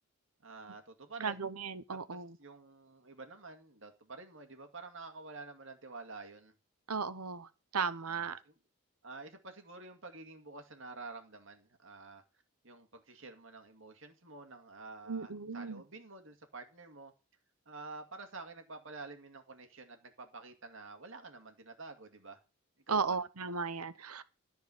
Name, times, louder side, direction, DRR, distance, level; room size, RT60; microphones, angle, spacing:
voice 1, 0.4-1.4 1.9-6.5 8.1-8.6 9.0-12.2 12.6-17.1 17.7-22.4 22.9-23.2, right 3 dB, 55° right, 2.3 m, -49 dB
voice 2, 1.2-2.4 6.9-8.4 15.1-15.8 22.9-24.2, right 5 dB, 85° right, 1.1 m, -36 dB
14.0 x 4.8 x 7.9 m
head